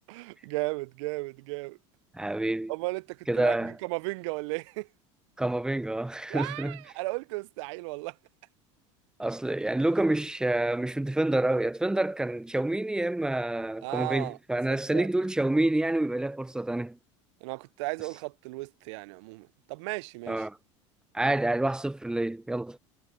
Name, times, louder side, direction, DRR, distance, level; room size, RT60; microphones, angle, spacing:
voice 1, 0.1-1.8 2.7-3.6 3.8-4.9 6.3-8.1 13.8-14.4 14.9-15.1 17.4-20.4, right 24 dB, 70° right, 0.5 m, -35 dB
voice 2, 2.1-2.7 3.3-3.8 5.4-6.8 9.2-17.0 20.3-20.6 21.1-22.8, right 1 dB, 5° right, 0.4 m, -28 dB
hypercardioid pair, 85°, 16 cm